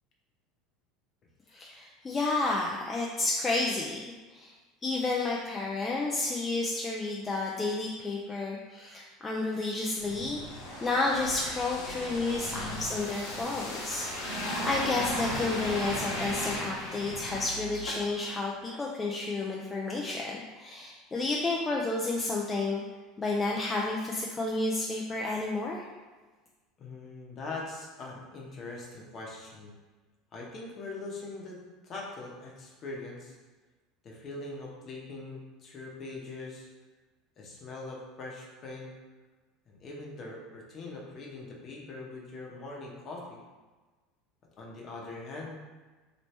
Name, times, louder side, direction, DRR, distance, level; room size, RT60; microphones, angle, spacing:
voice 1, 1.5-4.0 4.3-4.5 4.8-10.4 10.8-22.8 23.2-25.9, left 3 dB, 25° left, -2 dB, 0.4 m, -31 dB
sound 1, 10.0-18.3 18.7-18.8, equal, 80° left, 1.1 m, -36 dB
voice 2, 26.8-29.7 30.3-33.4 34.0-36.7 37.4-38.9 39.7-43.4 44.6-45.6, left 3 dB, 45° left, -2 dB, 0.9 m, -42 dB
3.0 x 2.9 x 3.2 m, 1.3 s
hypercardioid pair, 90°, 0 cm